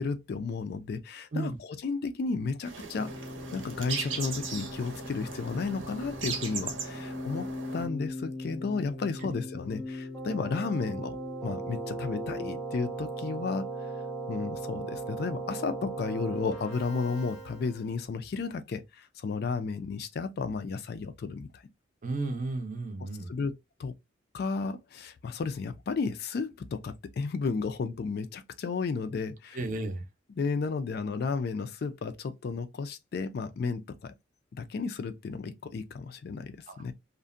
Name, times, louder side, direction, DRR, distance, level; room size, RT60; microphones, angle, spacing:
voice 1, 0.0-3.1 3.5-7.5 7.7-11.2 11.4-13.7 14.3-21.6 23.3-23.5 23.8-23.9 24.3-29.6 30.4-34.1 34.6-36.9, left 4 dB, 55° left, 0.3 m, -33 dB
sound 1, 2.6-7.9, right 6 dB, 80° right, 0.7 m, -38 dB
Keyboard (musical), 3.0-18.0, right 2 dB, 5° left, 0.6 m, -39 dB
Keyboard (musical) 2, 6.7-12.6, left 3 dB, 70° left, 0.7 m, -41 dB
voice 2, 22.0-23.3 29.5-30.0 36.7-36.8, right 2 dB, 40° right, 0.5 m, -33 dB
2.5 x 2.1 x 2.4 m
head